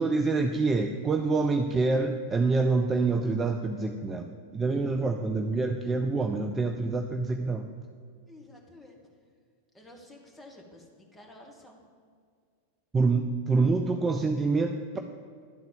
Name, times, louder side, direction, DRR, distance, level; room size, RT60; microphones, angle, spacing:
voice 1, 0.0-7.7 12.9-15.0, right 3 dB, 15° right, 5 dB, 0.4 m, -26 dB
voice 2, 8.3-9.1 9.7-11.8, left 1 dB, 10° left, -1 dB, 1.5 m, -51 dB
10.5 x 3.9 x 6.9 m, 2.1 s
figure-of-eight pair, 90°, 0 cm